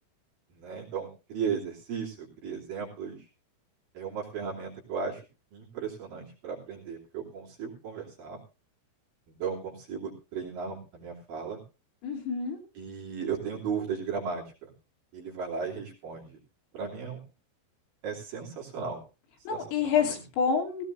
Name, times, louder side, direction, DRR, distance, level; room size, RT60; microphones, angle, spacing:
voice 1, 0.6-3.2 3.9-5.2 5.5-8.4 9.4-11.6 12.8-14.4 15.1-16.4 16.7-17.2 18.0-19.0 19.5-20.0, right 6 dB, 50° right, -3 dB, 4.2 m, -35 dB
voice 2, 12.0-12.6 19.5-20.9, left 6 dB, 75° left, 1 dB, 5.5 m, -28 dB
17.5 x 16.5 x 2.6 m, 0.30 s
omnidirectional pair, 5.9 m